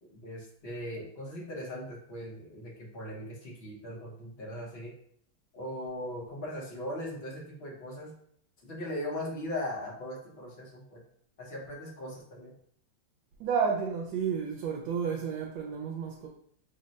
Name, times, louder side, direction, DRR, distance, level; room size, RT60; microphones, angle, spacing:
voice 1, 0.0-4.9 5.5-8.1 8.6-11.0 11.4-12.5, left 1 dB, 60° left, 0.6 m, -39 dB
voice 2, 13.4-16.3, right 6 dB, 75° right, 1.3 m, -31 dB
3.7 x 2.1 x 4.0 m
omnidirectional pair, 2.3 m